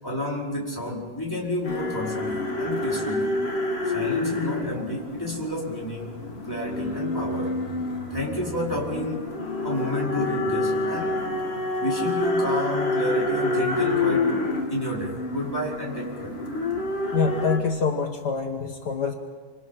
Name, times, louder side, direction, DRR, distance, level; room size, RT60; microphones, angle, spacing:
voice 1, 0.0-3.4 3.9-7.6 8.1-9.3 9.6-11.3 11.8-14.4 14.7-16.4, left 1 dB, 5° left, -4 dB, 4.9 m, -30 dB
sound 1, 1.6-17.6, left 2 dB, 20° left, 1.9 m, -28 dB
voice 2, 17.1-19.1, left 5 dB, 60° left, 4 dB, 1.0 m, -25 dB
28.0 x 26.5 x 5.8 m, 1.4 s
omnidirectional pair, 3.8 m